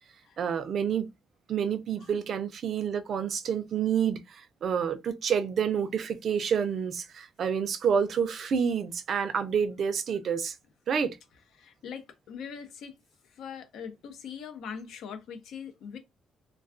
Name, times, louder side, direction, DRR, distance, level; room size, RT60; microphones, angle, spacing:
voice 1, 0.4-1.1 1.5-10.6 10.9-11.2, right 7 dB, 60° right, 0.4 m, -28 dB
voice 2, 11.6-12.9 13.2-16.0, left 7 dB, 80° left, 0.5 m, -41 dB
2.3 x 2.3 x 2.4 m
cardioid pair, 90°, 0 cm